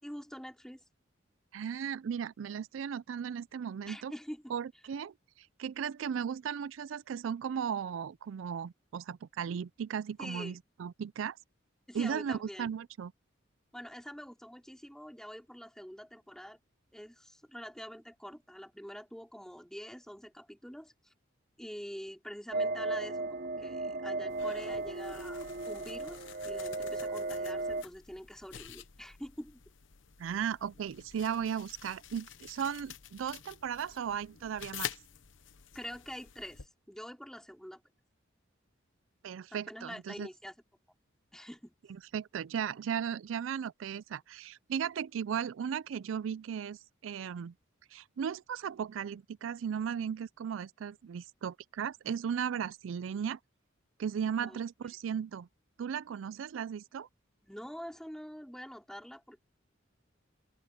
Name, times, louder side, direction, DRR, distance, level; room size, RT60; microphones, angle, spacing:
voice 1, 0.0-0.8 3.8-4.5 10.2-10.6 11.9-12.7 13.7-16.6 16.9-21.1 21.6-23.2 23.6-29.6 35.7-37.8 39.5-40.5 41.3-41.7 54.5-54.6 57.4-59.4, equal, 5° left, 4.4 m, -46 dB
voice 2, 1.5-4.1 4.5-11.4 11.9-13.1 30.2-34.9 39.2-40.3 42.1-47.5 47.9-53.4 54.0-55.5 55.8-57.1, right 7 dB, 90° right, 0.4 m, -36 dB
sound 1, 22.5-27.8, right 2 dB, 45° right, 0.7 m, -35 dB
sound 2, 24.3-36.7, left 9 dB, 80° left, 1.0 m, -48 dB
open air
head